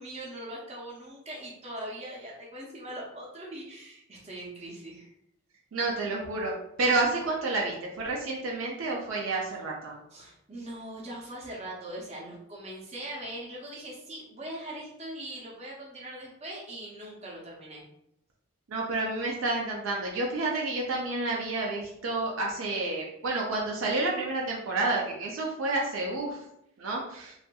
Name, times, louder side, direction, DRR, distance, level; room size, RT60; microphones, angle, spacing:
voice 1, 0.0-5.1 10.1-17.8, right 1 dB, 30° right, -4 dB, 0.6 m, -41 dB
voice 2, 5.7-6.5 6.8-10.0 18.7-26.4 26.8-27.3, right 2 dB, 65° right, -2 dB, 0.4 m, -29 dB
2.6 x 2.4 x 2.2 m, 0.76 s
head